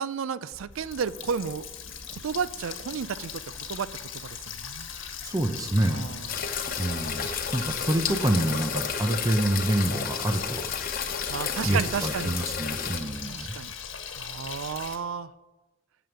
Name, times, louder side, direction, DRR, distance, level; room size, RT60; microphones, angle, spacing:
voice 1, 0.0-1.7 2.1-3.4 3.7-3.9 4.2-4.9 5.9-6.3 11.3-12.3 13.3-13.7 14.1-15.3, right 6 dB, 80° right, 16 dB, 0.4 m, -32 dB
Water tap faucet, 0.5-15.0, left 7 dB, 70° left, 1.3 m, -40 dB
voice 2, 4.9-6.1 6.8-11.1 11.6-13.5, right 1 dB, 15° right, 5 dB, 0.6 m, -27 dB
sound 1, 6.3-13.0, left 6 dB, 45° left, 0.8 m, -32 dB
9.1 x 7.0 x 7.9 m, 1.2 s
head